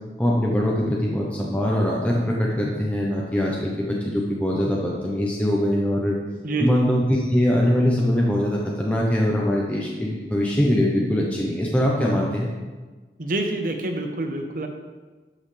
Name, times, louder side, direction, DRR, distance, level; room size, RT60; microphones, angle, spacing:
voice 1, 0.2-6.2 6.6-12.5, equal, 10° left, -3 dB, 0.8 m, -22 dB
voice 2, 6.4-6.9 13.2-14.7, right 2 dB, 50° right, 4 dB, 0.9 m, -26 dB
12.0 x 5.6 x 3.3 m, 1.3 s
head